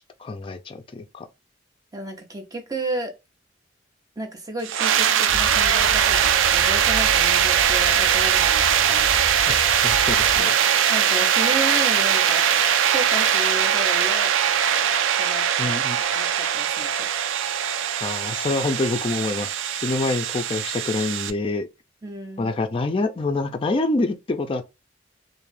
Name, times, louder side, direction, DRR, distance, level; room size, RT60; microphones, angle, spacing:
voice 1, 0.2-1.3 9.5-10.5 15.6-16.0 18.0-21.7 22.4-24.6, left 2 dB, 30° left, 0.4 m, -26 dB
voice 2, 1.9-3.1 4.2-9.1 10.9-12.5 12.9-14.3 15.2-17.1 22.0-22.5, right 1 dB, 20° right, 0.7 m, -33 dB
sound 1, 4.6-21.3, right 9 dB, 85° right, 0.4 m, -21 dB
sound 2, 5.3-10.4, left 1 dB, 60° right, 1.3 m, -35 dB
2.6 x 2.4 x 3.2 m
head